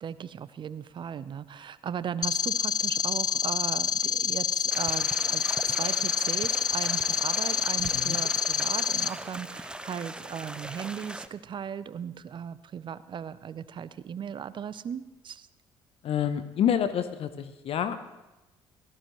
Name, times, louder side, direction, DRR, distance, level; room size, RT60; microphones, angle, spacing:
voice 1, 0.0-15.5, right 8 dB, 40° right, 16 dB, 0.6 m, -37 dB
sound 1, 2.2-9.1, left 7 dB, 35° left, 0.3 m, -27 dB
sound 2, 4.7-11.3, right 1 dB, 10° right, 0.7 m, -40 dB
voice 2, 16.0-18.0, left 9 dB, 55° left, 11 dB, 0.8 m, -28 dB
17.0 x 14.0 x 3.1 m, 1.0 s
hypercardioid pair, 50°, 12 cm